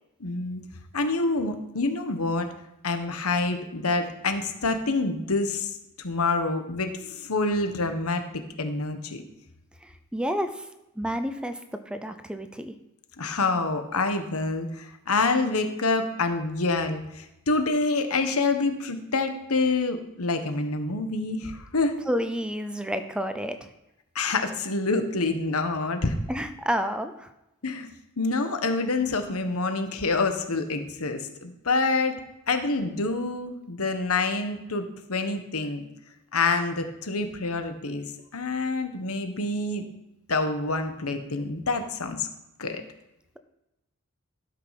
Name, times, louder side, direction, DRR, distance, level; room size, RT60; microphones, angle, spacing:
voice 1, 0.2-0.6 0.9-2.5 2.8-5.7 6.0-9.2 13.2-21.9 24.1-26.1 27.6-27.9 28.2-32.2 32.5-34.8 35.1-35.8 36.3-38.0 38.3-39.9 40.3-42.3 42.6-42.8, left 3 dB, 80° left, 7 dB, 1.2 m, -27 dB
voice 2, 9.8-10.7 11.0-11.6 11.9-12.7 22.1-23.7 26.3-27.3, equal, 5° right, 9 dB, 0.5 m, -30 dB
12.5 x 5.7 x 5.8 m, 0.91 s
head